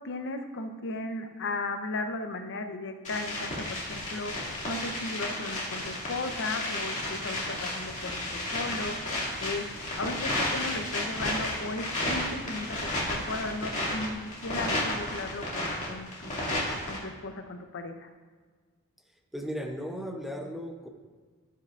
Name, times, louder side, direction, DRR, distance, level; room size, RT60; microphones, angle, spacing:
voice 1, 0.0-9.6 10.0-14.2 14.4-18.1, left 2 dB, 55° left, 6 dB, 0.8 m, -36 dB
sound 1, 3.0-17.0, left 1 dB, 35° left, 2.2 m, -32 dB
voice 2, 19.3-20.9, equal, ahead, 3 dB, 0.7 m, -36 dB
16.0 x 5.6 x 2.5 m, 1.5 s
head